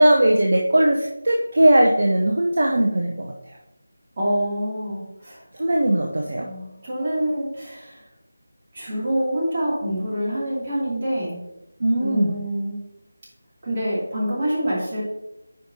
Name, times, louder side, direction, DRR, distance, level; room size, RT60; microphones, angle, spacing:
voice 1, 0.0-3.6 5.5-6.5 11.8-12.4, right 1 dB, 50° right, 1 dB, 0.7 m, -19 dB
voice 2, 4.2-5.4 6.4-8.0 8.7-11.4 12.0-12.8 13.6-15.0, equal, 30° right, -6 dB, 2.5 m, -26 dB
9.6 x 5.0 x 2.8 m, 0.90 s
figure-of-eight pair, 165°, 0 cm